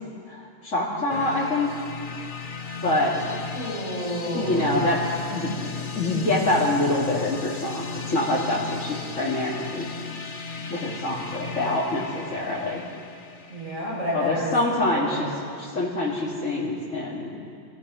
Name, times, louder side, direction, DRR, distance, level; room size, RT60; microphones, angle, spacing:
voice 1, 0.3-1.7 2.8-3.2 4.3-5.0 5.3-9.9 10.7-12.8 14.1-15.2 15.6-17.3, left 2 dB, 70° left, -6 dB, 3.2 m, -25 dB
sound 1, 1.1-14.8, left 4 dB, 45° left, 1.0 m, -36 dB
voice 2, 3.5-4.9 13.5-14.5 14.9-15.3, equal, 75° right, -5 dB, 6.7 m, -30 dB
26.5 x 17.0 x 6.4 m, 2.4 s
omnidirectional pair, 1.3 m